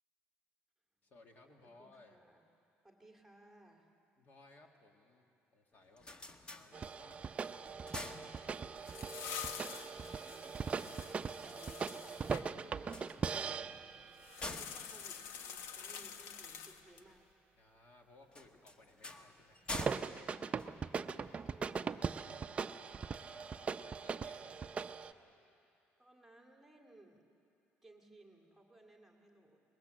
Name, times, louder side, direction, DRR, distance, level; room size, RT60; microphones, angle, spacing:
voice 1, 1.0-2.2 4.2-5.3 5.5-6.1 6.5-7.3 7.6-8.8 17.6-19.7 23.0-25.0, left 2 dB, 45° left, 3 dB, 2.1 m, -62 dB
voice 2, 1.6-2.4 2.8-3.9 10.1-10.9 11.4-13.8 14.3-17.3 20.1-23.1 26.0-27.2 27.8-29.6, right 2 dB, 5° right, 1 dB, 2.3 m, -61 dB
sound 1, 5.7-7.2 7.6-8.9 12.7-16.2 18.3-21.3, left 2 dB, 25° left, 1.1 m, -48 dB
sound 2, 6.7-14.4 19.7-25.1, right 5 dB, 30° right, 0.5 m, -40 dB
sound 3, 8.5-12.5 14.2-17.1, left 7 dB, 80° left, 1.2 m, -47 dB
25.0 x 21.0 x 7.8 m, 2.7 s
cardioid pair, 130°, 4 cm